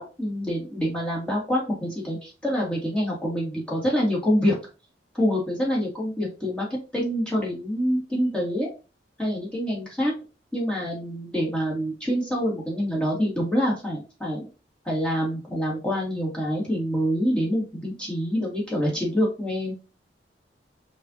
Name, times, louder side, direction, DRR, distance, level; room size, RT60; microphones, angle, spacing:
voice 1, 0.0-4.6 5.2-6.7 6.9-8.7 9.2-10.1 10.5-14.4 14.9-19.7, equal, 5° left, -5 dB, 1.8 m, -26 dB
5.4 x 2.5 x 2.8 m, 0.31 s
head